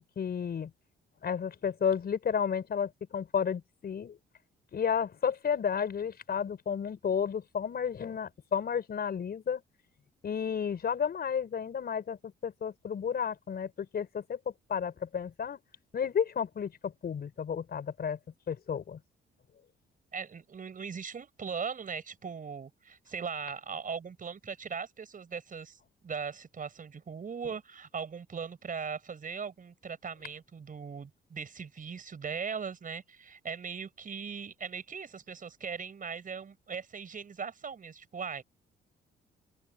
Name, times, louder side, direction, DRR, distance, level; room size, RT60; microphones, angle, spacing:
voice 1, 0.2-0.7 1.2-4.2 4.7-9.6 10.2-14.4 14.7-15.6 15.9-18.2 18.5-19.0, left 7 dB, 50° left, 5.4 m, -32 dB
voice 2, 20.1-25.8 26.0-38.4, right 6 dB, 45° right, 5.2 m, -39 dB
open air
cardioid pair, 90°, 20 cm